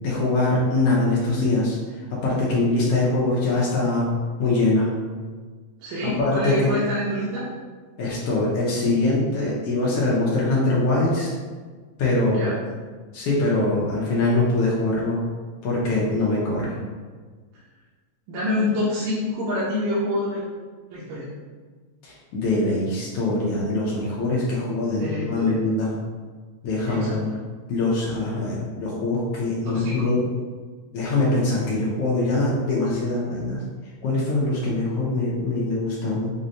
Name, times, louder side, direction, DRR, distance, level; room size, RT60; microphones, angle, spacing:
voice 1, 0.0-1.8 2.1-4.1 4.4-4.9 6.0-6.8 8.0-11.3 12.0-12.5 13.1-15.2 15.6-16.8 22.0-25.9 26.6-27.3 27.7-30.3 30.9-33.6 34.0-36.3, left 2 dB, 80° left, -5 dB, 1.4 m, -23 dB
voice 2, 5.8-7.5 12.3-12.6 18.3-20.4 20.9-21.3 25.0-25.6 26.9-27.2 29.6-30.1, left 1 dB, 75° right, -8 dB, 1.9 m, -26 dB
6.2 x 2.1 x 2.6 m, 1.5 s
omnidirectional pair, 3.3 m